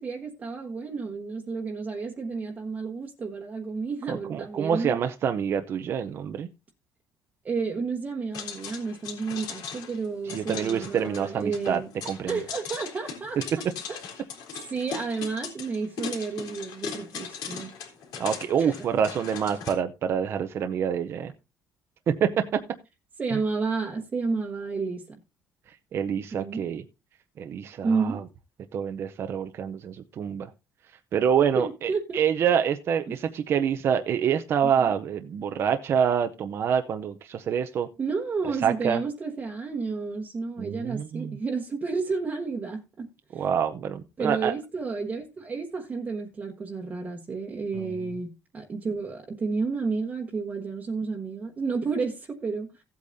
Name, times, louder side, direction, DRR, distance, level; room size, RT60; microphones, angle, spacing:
voice 1, 0.0-4.9 7.4-11.9 12.2-13.4 13.9-14.0 14.7-17.7 18.6-18.7 23.2-25.0 26.3-26.7 27.8-28.2 31.5-32.2 33.1-33.2 34.8-35.0 38.0-43.4 44.2-52.8, right 4 dB, 25° right, 1.2 m, -31 dB
voice 2, 4.1-6.5 10.3-11.8 12.1-12.4 18.2-21.3 22.1-22.3 23.3-23.4 25.9-26.8 27.4-28.2 28.7-30.5 31.1-37.9 38.6-39.0 40.6-41.4 43.3-44.5 47.8-47.9, right 8 dB, 40° right, 0.7 m, -26 dB
sound 1, 8.3-19.7, left 7 dB, 85° left, 3.4 m, -39 dB
16.0 x 8.5 x 2.7 m
cardioid pair, 165°, 6 cm